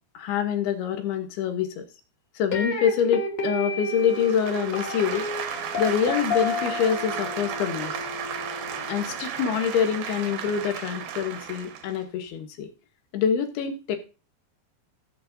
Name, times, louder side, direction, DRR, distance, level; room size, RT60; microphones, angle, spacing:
voice 1, 0.1-1.8 2.4-5.3 5.8-8.0 8.9-12.7 13.1-14.0, left 7 dB, 75° left, 6 dB, 3.1 m, -25 dB
sound 1, 2.5-9.6, left 3 dB, 55° left, 2.0 m, -32 dB
sound 2, 4.0-12.0, right 8 dB, 70° right, 2.1 m, -34 dB
16.0 x 7.1 x 2.6 m, 0.32 s
omnidirectional pair, 4.7 m